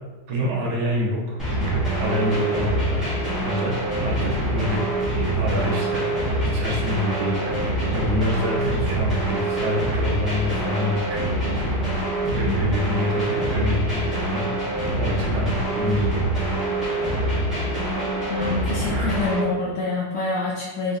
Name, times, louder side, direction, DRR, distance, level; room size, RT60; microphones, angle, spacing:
voice 1, 0.3-3.7 4.0-4.8 5.1-6.0 6.4-11.4 12.2-14.4 14.9-16.2 18.9-19.2, left 1 dB, 85° right, -3 dB, 1.5 m, -27 dB
sound 1, 1.4-19.4, right 1 dB, ahead, 1.0 m, -25 dB
voice 2, 18.3-21.0, left 4 dB, 75° left, -4 dB, 1.2 m, -27 dB
3.4 x 2.8 x 2.6 m, 1.3 s
omnidirectional pair, 2.3 m